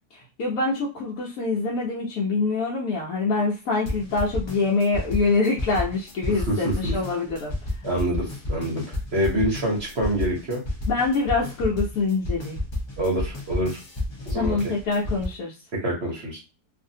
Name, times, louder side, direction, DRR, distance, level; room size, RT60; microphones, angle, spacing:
voice 1, 0.1-7.5 10.9-12.6 14.3-15.5, left 3 dB, 70° left, -4 dB, 1.1 m, -25 dB
sound 1, 3.9-15.2, left 1 dB, 40° left, 0.4 m, -31 dB
voice 2, 6.3-6.9 7.8-10.6 13.0-13.8 14.3-14.6 15.8-16.4, right 1 dB, 45° right, -3 dB, 1.0 m, -26 dB
2.6 x 2.6 x 2.7 m, 0.31 s
omnidirectional pair, 1.7 m